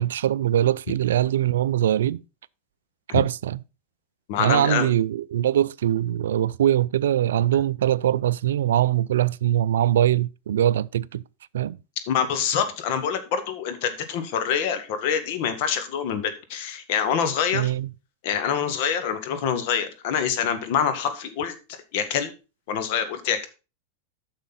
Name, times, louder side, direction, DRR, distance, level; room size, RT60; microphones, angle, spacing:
voice 1, 0.0-2.2 3.1-3.6 4.4-11.2 11.5-11.8 17.5-17.9, right 11 dB, 80° right, 0.4 m, -22 dB
voice 2, 4.3-4.9 12.1-17.7 18.2-22.3 22.7-23.5, left 7 dB, 60° left, 1.8 m, -26 dB
9.8 x 6.4 x 4.1 m
hypercardioid pair, 105°, 0 cm